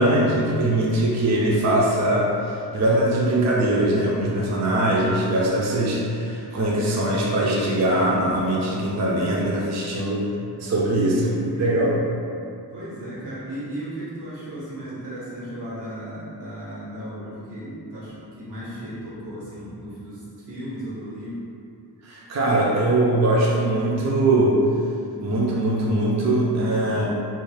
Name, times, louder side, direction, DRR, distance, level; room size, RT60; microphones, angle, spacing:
voice 1, 0.0-2.3 2.7-10.3 10.6-11.3 11.6-12.0 22.0-24.6 25.2-27.1, right 1 dB, 45° right, -4 dB, 0.4 m, -21 dB
voice 2, 11.1-11.8 12.7-21.4, right 1 dB, 90° right, -10 dB, 1.2 m, -35 dB
2.4 x 2.3 x 3.1 m, 2.5 s
wide cardioid pair, 90°, 40 cm